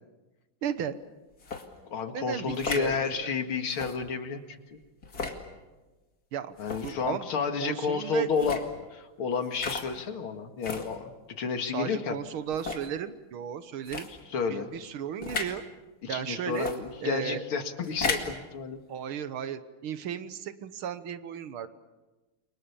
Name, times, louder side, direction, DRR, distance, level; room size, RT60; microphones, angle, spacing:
voice 1, 0.6-0.9 2.1-3.3 6.3-6.6 6.8-7.3 7.6-8.3 11.7-14.1 14.5-15.6 16.1-16.7 17.0-17.4 18.9-21.7, right 8 dB, 80° right, 12 dB, 2.0 m, -35 dB
sound 1, 1.4-1.6 2.5-2.9 3.7-4.0 5.0-5.4 6.6-6.9 8.3-8.7 9.5-9.9 10.6-10.9 11.6-11.7 12.5-12.9 13.8-14.1 15.2-15.5 16.5-16.8 17.8-18.3, left 4 dB, 45° left, 2.7 m, -34 dB
voice 2, 1.9-4.8 6.6-12.2 14.3-14.7 16.0-18.8, left 5 dB, 90° left, 7 dB, 2.7 m, -31 dB
29.5 x 24.0 x 7.1 m, 1.2 s
omnidirectional pair, 2.3 m